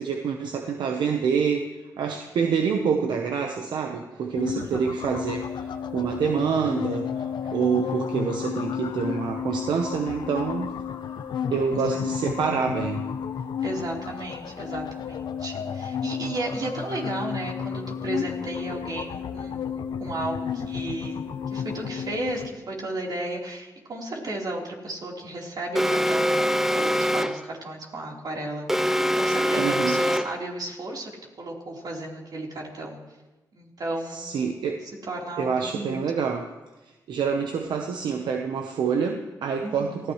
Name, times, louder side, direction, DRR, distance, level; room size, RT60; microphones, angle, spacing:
voice 1, 0.0-1.6 2.0-10.7 11.5-13.0 29.6-30.0 34.1-34.8 35.4-36.5 37.1-40.1, right 6 dB, 85° right, 4 dB, 1.0 m, -27 dB
sound 1, 4.4-22.5, left 7 dB, 80° left, 0.9 m, -32 dB
voice 2, 4.5-4.9 11.9-12.0 13.6-31.1 31.4-33.0 33.5-34.6 35.1-36.0 39.6-40.0, right 2 dB, 60° right, -2 dB, 3.9 m, -34 dB
Alarm, 25.8-27.5 28.7-30.5, equal, 5° right, 0.6 m, -24 dB
24.5 x 16.5 x 3.2 m, 1.1 s
cardioid pair, 65°, 8 cm